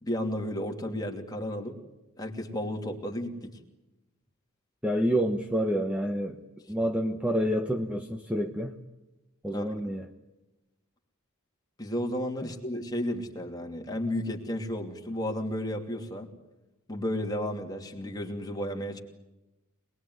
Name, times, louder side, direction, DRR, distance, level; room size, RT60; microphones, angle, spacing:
voice 1, 0.0-1.8 2.2-3.6 9.5-9.7 11.8-16.3 16.9-19.0, left 1 dB, 15° left, 2.8 m, -33 dB
voice 2, 4.8-6.4 6.7-8.7 9.4-10.1, equal, 5° right, 1.1 m, -28 dB
26.5 x 20.5 x 9.5 m
head